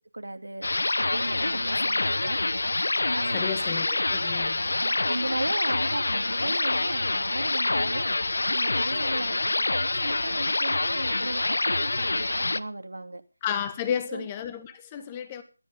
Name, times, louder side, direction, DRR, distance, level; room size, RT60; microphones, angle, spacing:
voice 1, 0.1-0.7 1.0-2.4 3.1-3.6 4.8-8.1 8.4-13.2 14.1-14.3, right 2 dB, 80° right, 6 dB, 2.7 m, -36 dB
sound 1, 0.6-12.6, left 2 dB, 70° left, 0.8 m, -26 dB
voice 2, 3.3-4.7 13.4-15.4, left 8 dB, 20° left, 12 dB, 1.4 m, -32 dB
19.0 x 12.5 x 3.7 m, 0.35 s
figure-of-eight pair, 165°, 0 cm